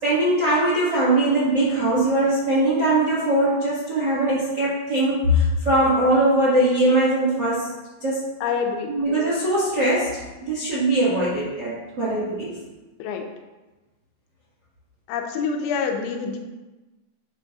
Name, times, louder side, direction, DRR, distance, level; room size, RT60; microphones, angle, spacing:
voice 1, 0.0-7.7 8.0-8.2 8.9-12.6, right 1 dB, 40° right, -7 dB, 1.5 m, -21 dB
voice 2, 8.4-8.9 13.0-13.3 15.1-16.4, left 6 dB, 85° left, 3 dB, 3.2 m, -26 dB
11.0 x 7.6 x 2.6 m, 1.1 s
omnidirectional pair, 5.4 m